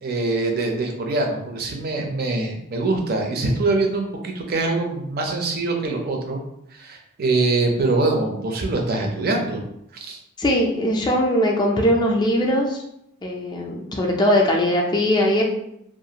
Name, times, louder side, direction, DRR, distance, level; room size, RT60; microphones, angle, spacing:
voice 1, 0.0-6.4 6.8-9.6 9.9-10.2, right 2 dB, 45° right, 2 dB, 0.5 m, -23 dB
voice 2, 10.4-12.8 13.2-15.4, equal, 20° left, -1 dB, 0.3 m, -20 dB
2.5 x 2.3 x 2.8 m, 0.78 s
head